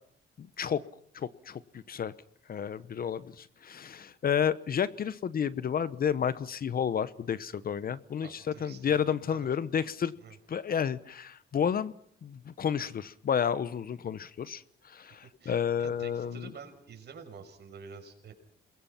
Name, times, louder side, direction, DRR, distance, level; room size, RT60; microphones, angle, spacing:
voice 1, 0.4-0.8 1.1-2.1 2.5-10.1 10.5-11.9 12.2-16.5, left 8 dB, 50° left, 16 dB, 0.9 m, -31 dB
voice 2, 8.2-9.0 9.3-9.5 10.2-10.4 15.4-18.3, right 6 dB, 60° right, 5 dB, 6.0 m, -48 dB
28.0 x 22.0 x 5.8 m, 0.64 s
cardioid pair, 90°, 20 cm